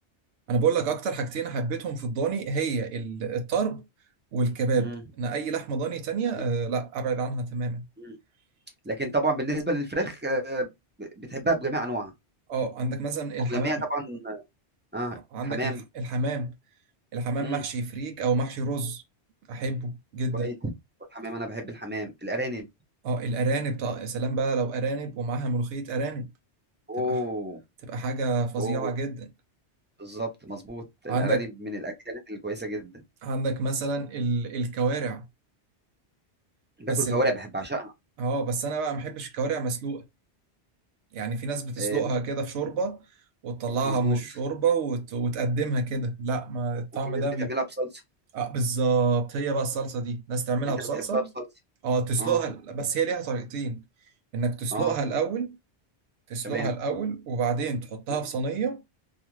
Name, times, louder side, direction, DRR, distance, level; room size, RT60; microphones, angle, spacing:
voice 1, 0.5-3.8 4.3-7.9 12.5-13.8 15.3-16.5 17.1-19.0 19.5-20.5 23.0-26.3 27.0-27.2 27.8-29.3 31.1-31.5 33.2-35.3 36.9-37.2 38.2-40.1 41.1-43.0 43.4-47.5 48.3-51.2 51.8-53.8 54.3-55.6 56.3-58.8, right 4 dB, 90° right, 0.9 m, -28 dB
voice 2, 8.8-10.7 11.0-12.1 13.5-14.4 14.9-15.2 15.4-15.8 17.4-17.6 20.3-20.7 21.1-22.7 26.9-27.6 28.6-29.0 30.0-32.9 36.8-37.9 41.8-42.0 43.8-44.2 47.1-47.9 50.9-51.4 52.2-52.4 54.7-54.9 56.4-56.7, right 1 dB, 15° right, 0.4 m, -30 dB
2.4 x 2.4 x 3.0 m
omnidirectional pair, 1.1 m